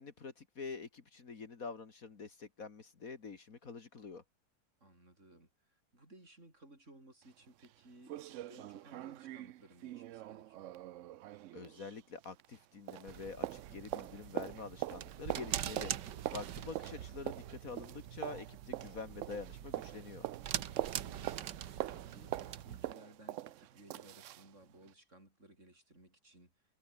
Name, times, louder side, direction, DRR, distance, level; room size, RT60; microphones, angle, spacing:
voice 1, 0.0-4.2 11.5-20.3, left 4 dB, 55° left, 2.3 m, -46 dB
voice 2, 4.8-10.8 21.0-26.5, right 2 dB, 45° right, 6.7 m, -60 dB
sound 1, 7.2-7.3 7.6-7.7 8.1-12.6 12.9-24.5 24.9-25.0, right 14 dB, 75° right, 0.7 m, -44 dB
sound 2, 13.1-22.9, right 10 dB, 90° right, 1.7 m, -44 dB
omnidirectional pair, 1.8 m